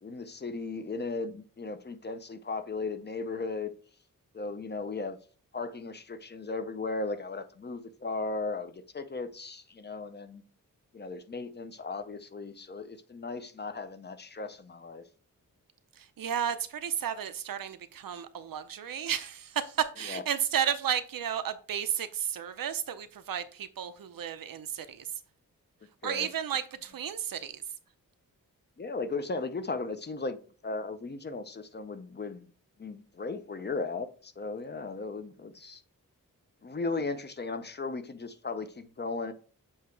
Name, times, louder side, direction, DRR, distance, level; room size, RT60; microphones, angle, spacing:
voice 1, 0.0-3.7 4.3-5.2 5.5-10.4 10.9-15.0 20.1-20.2 26.0-26.3 28.8-30.4 30.6-32.5 32.8-35.8 36.6-39.3, left 3 dB, 30° left, 0.5 m, -36 dB
voice 2, 16.0-25.1 26.0-27.6, right 9 dB, 85° right, 0.6 m, -33 dB
7.2 x 2.8 x 4.6 m
wide cardioid pair, 155°, 33 cm